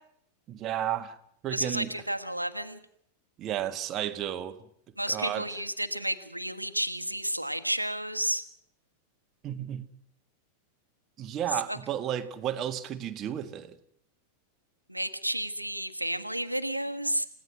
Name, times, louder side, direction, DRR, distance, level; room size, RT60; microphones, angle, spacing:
voice 1, 0.5-1.2 1.4-1.9 3.4-4.6 5.1-5.5 9.4-9.8 11.2-13.8, right 11 dB, 30° right, 1.6 m, -32 dB
voice 2, 1.5-2.8 5.0-8.4 11.7-11.8 14.9-17.3, right 1 dB, 90° right, 1.4 m, -31 dB
29.0 x 16.0 x 6.2 m
figure-of-eight pair, 90°, 0 cm